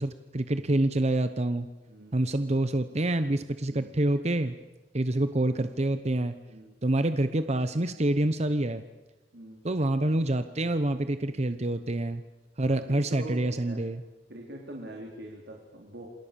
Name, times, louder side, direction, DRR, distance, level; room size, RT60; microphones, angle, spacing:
voice 1, 0.0-1.7 2.1-4.6 4.9-6.3 6.8-8.8 9.6-12.2 12.6-14.0, right 1 dB, 40° right, 10 dB, 1.0 m, -27 dB
voice 2, 12.7-13.8 14.3-16.1, right 1 dB, 75° right, 0 dB, 4.0 m, -43 dB
28.0 x 26.5 x 7.0 m, 1.2 s
head